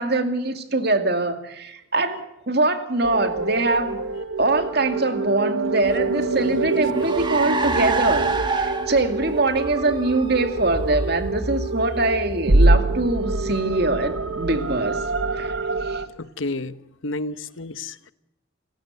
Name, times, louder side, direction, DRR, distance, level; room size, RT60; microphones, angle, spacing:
voice 1, 0.0-4.0 4.4-15.0 15.4-15.5 15.8-16.0, right 2 dB, 55° right, 7 dB, 2.4 m, -23 dB
sound 1, 3.0-16.1, right 2 dB, 85° right, 1.6 m, -25 dB
Car, 5.8-13.6, right 3 dB, 25° right, 1.9 m, -29 dB
voice 2, 16.2-16.8 17.0-18.1, left 2 dB, 80° left, 14 dB, 1.1 m, -30 dB
29.5 x 17.0 x 8.2 m, 0.88 s
head